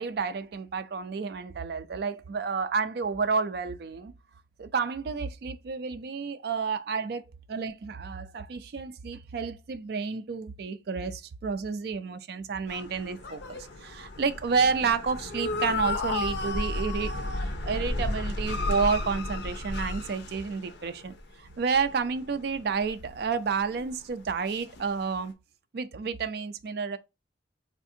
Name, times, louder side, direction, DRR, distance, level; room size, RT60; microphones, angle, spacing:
voice 1, 0.0-4.1 4.6-25.3 25.7-27.0, right 5 dB, 60° right, 0.3 m, -30 dB
sound 1, 12.7-21.2 21.5-23.9 24.4-25.0, left 2 dB, 75° left, 0.5 m, -33 dB
3.5 x 2.5 x 2.6 m
head